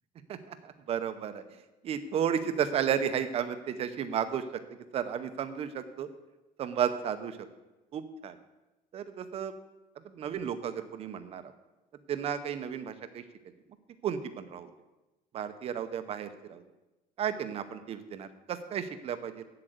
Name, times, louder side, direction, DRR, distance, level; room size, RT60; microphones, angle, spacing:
voice 1, 0.3-1.4 1.8-4.6 4.9-6.1 6.6-7.4 7.9-8.4 8.9-9.5 10.0-11.4 12.1-13.2 14.0-14.7 15.3-16.6 17.2-19.4, right 8 dB, 40° right, 10 dB, 0.8 m, -33 dB
7.9 x 7.8 x 7.8 m, 1.0 s
cardioid pair, 165°, 17 cm